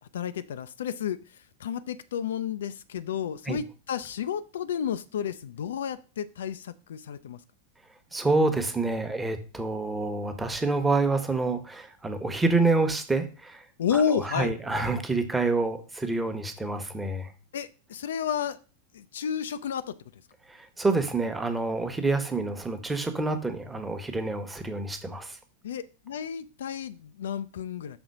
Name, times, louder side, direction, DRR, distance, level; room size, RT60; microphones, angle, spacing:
voice 1, 0.1-7.4 13.8-14.5 17.5-18.6 18.9-20.0 25.6-28.0, left 8 dB, 60° left, 13 dB, 0.4 m, -31 dB
voice 2, 8.1-13.6 13.9-17.3 20.5-25.4, right 3 dB, 10° right, 8 dB, 1.0 m, -27 dB
6.2 x 3.8 x 5.3 m, 0.35 s
figure-of-eight pair, 90°, 0 cm